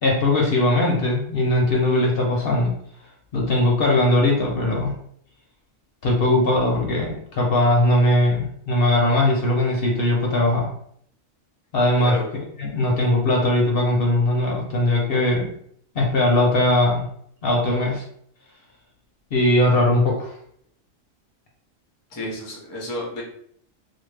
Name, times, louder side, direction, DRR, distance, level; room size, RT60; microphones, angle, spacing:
voice 1, 0.0-2.7 3.3-4.9 6.0-10.7 11.7-12.1 12.6-15.5 15.9-17.0 17.4-18.0 19.3-20.3, left 1 dB, 55° left, -1 dB, 0.7 m, -20 dB
voice 2, 22.1-23.2, left 1 dB, 30° left, -3 dB, 0.4 m, -30 dB
2.6 x 2.1 x 3.2 m, 0.66 s
omnidirectional pair, 1.4 m